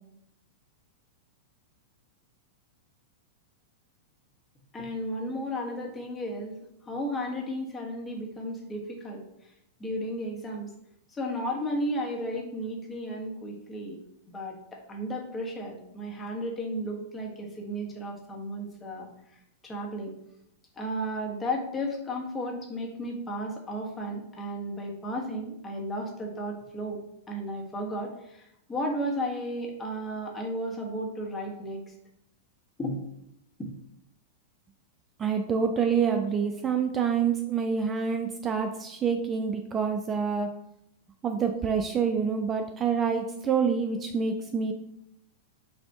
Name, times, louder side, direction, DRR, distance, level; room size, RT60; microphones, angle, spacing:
voice 1, 4.7-6.6 6.8-9.5 9.8-10.7 11.1-14.0 14.3-19.1 19.6-20.1 20.8-27.0 27.3-31.8 32.8-33.0 33.6-33.7, equal, 15° left, 0 dB, 1.1 m, -34 dB
voice 2, 35.2-40.5 41.2-44.7, right 6 dB, 25° right, 5 dB, 0.4 m, -27 dB
5.9 x 2.6 x 3.5 m, 0.79 s
hypercardioid pair, 100°, 0 cm